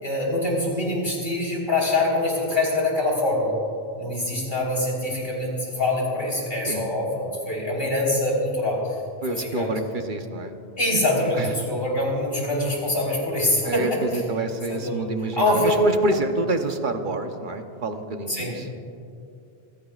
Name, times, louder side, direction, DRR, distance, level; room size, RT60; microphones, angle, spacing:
voice 1, 0.0-3.5 4.0-9.0 9.3-9.7 10.8-14.2 14.7-15.9 18.3-18.6, left 1 dB, 60° left, -3 dB, 4.0 m, -24 dB
voice 2, 9.2-10.6 11.3-11.5 13.6-18.8, right 2 dB, 50° right, 6 dB, 1.0 m, -28 dB
27.0 x 15.5 x 2.4 m, 2.5 s
omnidirectional pair, 1.1 m